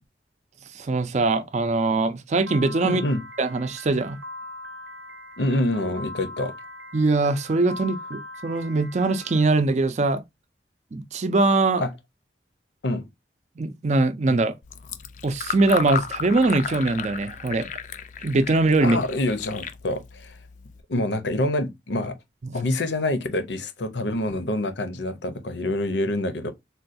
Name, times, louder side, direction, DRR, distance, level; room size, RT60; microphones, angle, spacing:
voice 1, 0.7-3.0 3.4-4.2 6.9-10.2 10.9-11.8 13.6-14.5 15.2-17.7 18.2-19.0 22.4-22.6, right 3 dB, 40° right, 0.4 m, -22 dB
Piano, 2.5-9.4, left 1 dB, 85° right, 0.7 m, -40 dB
voice 2, 2.8-3.2 5.4-6.5 11.8-11.9 12.8-13.1 18.8-20.4 20.9-22.2 22.5-26.5, left 1 dB, 85° left, 0.7 m, -26 dB
Fill (with liquid), 14.6-20.8, left 7 dB, 45° left, 0.3 m, -34 dB
3.7 x 2.3 x 2.6 m
head